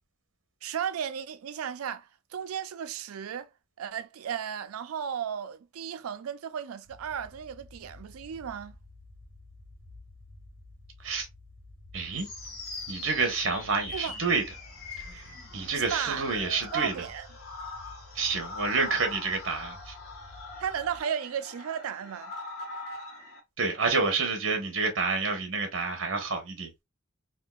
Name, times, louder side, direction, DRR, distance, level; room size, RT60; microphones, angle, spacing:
voice 1, 0.6-3.5 3.8-8.8 13.9-14.2 15.7-16.3 16.7-17.3 20.6-22.3, right 8 dB, 90° right, 0.4 m, -34 dB
sound 1, 6.8-21.0, left 2 dB, 45° left, 1.0 m, -51 dB
voice 2, 11.9-12.3 12.9-14.4 15.1-15.2 15.5-16.9 18.1-19.9 23.6-26.7, right 4 dB, 60° right, 1.0 m, -28 dB
sound 2, 12.1-23.4, left 3 dB, 90° left, 1.1 m, -42 dB
3.6 x 2.4 x 2.3 m
head